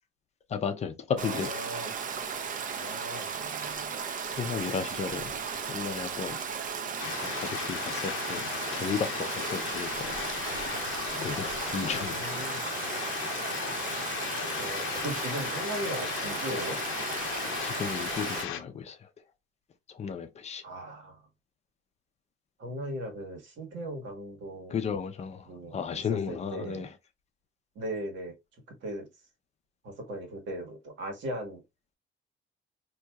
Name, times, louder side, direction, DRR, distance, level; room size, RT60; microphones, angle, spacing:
voice 1, 0.5-1.6 2.1-2.2 4.3-5.4 5.7-6.4 7.2-8.5 8.7-10.2 11.1-12.2 12.8-13.1 17.6-19.1 19.9-20.6 24.7-26.9, left 6 dB, 35° left, 0.6 m, -34 dB
voice 2, 1.1-1.9 2.7-3.9 11.9-12.6 14.6-16.8 20.6-21.2 22.6-24.8 25.5-26.9 27.7-28.3 28.7-29.1 29.8-31.6, right 1 dB, 65° right, 1.5 m, -38 dB
Stream, 1.2-18.4, right 6 dB, 40° right, 0.6 m, -35 dB
sound 1, 7.0-18.6, left 10 dB, 90° left, 0.6 m, -36 dB
4.2 x 2.8 x 2.3 m
cardioid pair, 140°, 20 cm